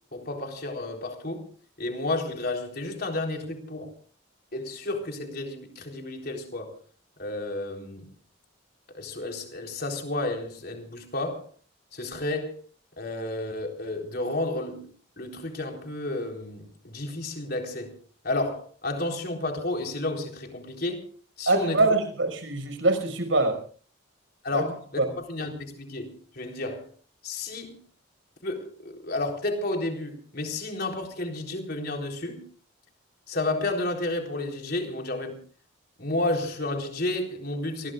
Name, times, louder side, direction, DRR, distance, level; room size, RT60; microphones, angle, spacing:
voice 1, 0.1-1.4 1.8-3.9 4.5-6.8 7.2-8.1 8.9-11.5 11.9-12.6 13.0-14.9 15.2-18.0 18.2-21.1 21.4-21.9 24.4-26.9 27.2-27.8 28.4-32.4 33.3-35.4 36.0-37.9, left 2 dB, 50° left, 3.9 m, -31 dB
voice 2, 21.5-23.6 24.5-24.6 25.0-25.1, right 2 dB, 70° right, 5.7 m, -24 dB
28.5 x 20.5 x 2.5 m
head